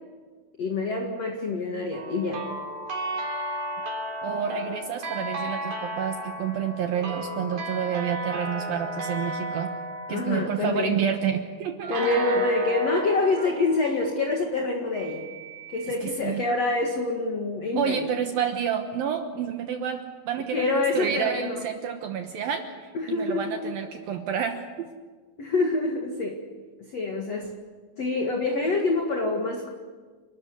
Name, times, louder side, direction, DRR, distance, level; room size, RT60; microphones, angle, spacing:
voice 1, 0.6-2.5 10.1-11.0 11.9-15.3 15.7-18.1 20.5-21.6 22.9-23.7 25.4-26.4 26.8-27.5 28.0-29.7, left 3 dB, 45° left, 2 dB, 2.5 m, -26 dB
sound 1, 1.9-11.1 11.9-14.8, right 1 dB, 50° right, 4.9 m, -34 dB
voice 2, 4.2-9.7 10.1-11.9 15.9-16.4 17.8-24.9, right 8 dB, 65° right, 5 dB, 2.6 m, -29 dB
Telephone, 6.9-7.4 10.4-10.9 11.8-12.1 13.4-13.7 14.9-15.9, right 8 dB, 15° right, 6.1 m, -44 dB
30.0 x 13.5 x 9.7 m, 1.5 s
omnidirectional pair, 5.0 m